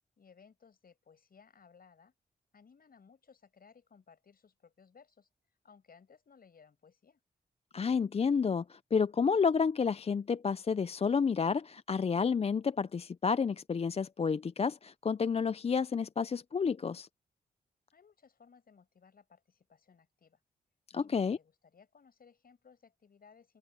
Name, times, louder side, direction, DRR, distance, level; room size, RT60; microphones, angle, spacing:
voice 1, 0.2-2.1 2.5-5.3 5.6-7.2 17.9-20.4 20.9-23.6, left 6 dB, 60° left, 6.6 m, -61 dB
voice 2, 7.7-17.1 20.9-21.4, left 5 dB, 35° left, 0.5 m, -30 dB
open air
cardioid pair, 60°, 17 cm